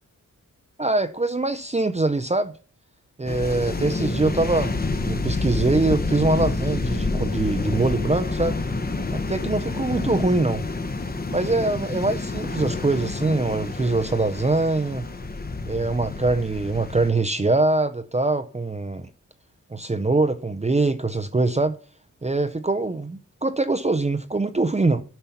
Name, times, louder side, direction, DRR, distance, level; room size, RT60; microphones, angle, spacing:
voice 1, 0.8-2.5 3.2-4.7 5.0-8.6 9.1-10.7 11.3-15.1 15.7-19.1 19.7-21.8 22.2-25.0, right 2 dB, 20° right, 0.6 m, -23 dB
sound 1, 3.3-17.1, left 3 dB, 30° left, 0.9 m, -28 dB
12.0 x 5.6 x 5.7 m
wide cardioid pair, 125°, 32 cm